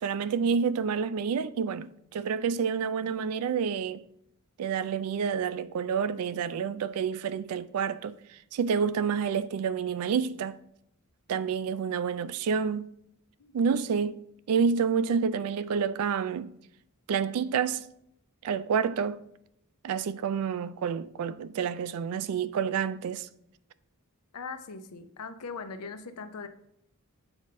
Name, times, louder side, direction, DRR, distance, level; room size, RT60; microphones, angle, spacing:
voice 1, 0.0-4.0 4.6-8.2 8.5-10.6 11.3-12.9 13.5-14.2 14.5-16.5 17.1-17.9 18.4-19.2 19.8-23.3, right 6 dB, 70° right, 0.3 m, -28 dB
voice 2, 13.4-13.8 24.3-26.5, left 4 dB, 85° left, 0.6 m, -40 dB
7.2 x 2.6 x 5.2 m
head